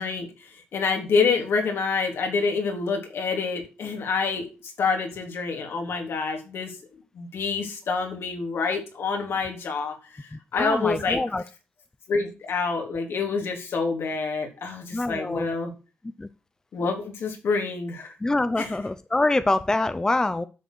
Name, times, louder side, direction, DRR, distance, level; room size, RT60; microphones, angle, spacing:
voice 1, 0.0-6.8 7.2-11.2 12.1-15.7 16.7-18.1 18.6-18.8, left 4 dB, 70° left, 3.6 m, -27 dB
voice 2, 10.6-11.4 14.9-15.5 16.2-16.3 18.2-20.5, left 2 dB, 15° left, 0.6 m, -25 dB
10.0 x 7.1 x 6.3 m
wide cardioid pair, 130°, 4 cm